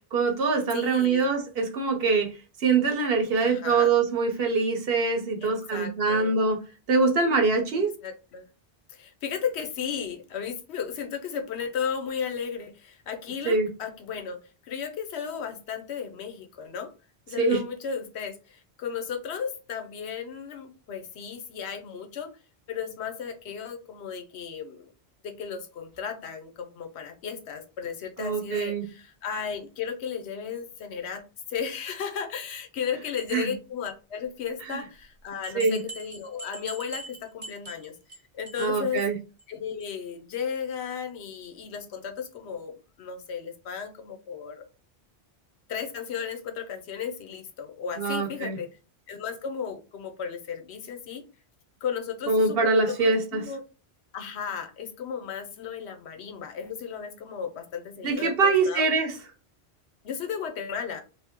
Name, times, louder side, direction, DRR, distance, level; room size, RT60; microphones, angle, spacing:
voice 1, 0.1-2.3 2.6-6.6 6.9-7.9 13.4-13.7 17.4-17.6 28.2-28.8 33.3-33.5 34.7-34.8 35.5-35.8 38.6-39.2 48.0-48.6 52.3-53.4 58.0-59.1, right 4 dB, 65° right, 4 dB, 0.9 m, -24 dB
voice 2, 0.7-1.3 3.4-3.9 5.4-6.4 8.0-8.5 8.9-16.9 17.3-22.3 22.7-24.9 25.2-31.2 31.5-38.0 38.3-39.0 39.5-44.6 45.7-48.7 49.1-51.2 51.8-52.6 52.9-53.6 54.1-58.9 60.0-61.0, left 7 dB, 80° left, 6 dB, 0.9 m, -35 dB
sound 1, 35.0-35.1 35.4-38.2 38.5-38.7 39.0-39.1 39.4-39.5 39.8-39.9, right 2 dB, 30° right, 0.8 m, -41 dB
2.9 x 2.6 x 3.5 m, 0.33 s
omnidirectional pair, 1.1 m